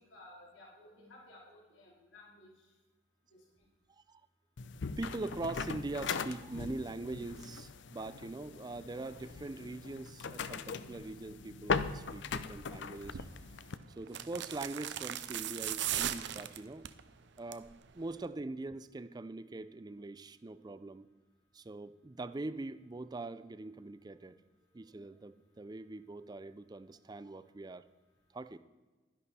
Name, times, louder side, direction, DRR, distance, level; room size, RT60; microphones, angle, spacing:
voice 1, 0.1-2.5 3.3-3.4 17.6-17.8, left 2 dB, 80° left, -3 dB, 3.3 m, -56 dB
sound 1, 4.6-13.8, left 5 dB, 60° left, 0.5 m, -40 dB
voice 2, 5.0-13.3 14.0-16.9 17.4-21.1 21.5-24.4 24.7-27.8 28.3-28.6, right 2 dB, 20° right, 13 dB, 0.4 m, -42 dB
sound 2, 13.0-13.3 14.1-17.0 17.4-17.7 18.0-18.1, right 11 dB, 60° right, 0.6 m, -37 dB
11.5 x 11.0 x 4.2 m, 1.3 s
head